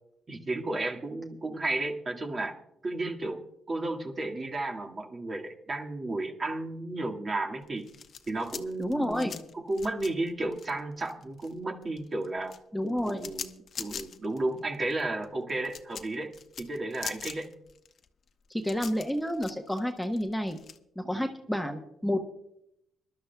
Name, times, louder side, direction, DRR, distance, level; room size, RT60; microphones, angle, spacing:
voice 1, 0.3-2.6 2.8-7.9 8.3-12.5 13.2-13.5 13.8-17.5 21.1-21.3, right 2 dB, 35° right, 3 dB, 1.8 m, -33 dB
sound 1, 7.6-11.5 11.8-20.8, left 7 dB, 55° left, 0.9 m, -43 dB
voice 2, 8.8-9.4 12.7-13.3 18.5-20.6 21.0-22.2, equal, ahead, 3 dB, 1.1 m, -30 dB
25.5 x 12.0 x 2.3 m, 0.78 s
cardioid pair, 90°, 0 cm